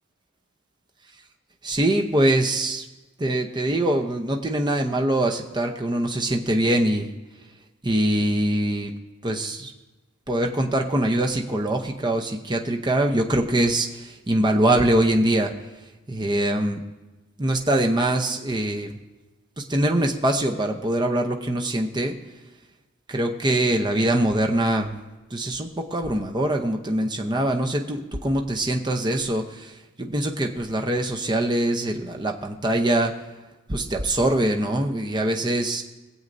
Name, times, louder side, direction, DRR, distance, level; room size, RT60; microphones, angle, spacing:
voice 1, 1.6-2.8 3.2-7.1 7.8-8.9 9.2-9.7 10.3-15.5 16.1-16.8 17.4-18.9 19.6-22.2 23.1-24.9 25.3-33.1 33.7-35.8, right 1 dB, 20° right, 2 dB, 0.8 m, -23 dB
23.0 x 7.9 x 2.7 m, 1.1 s
head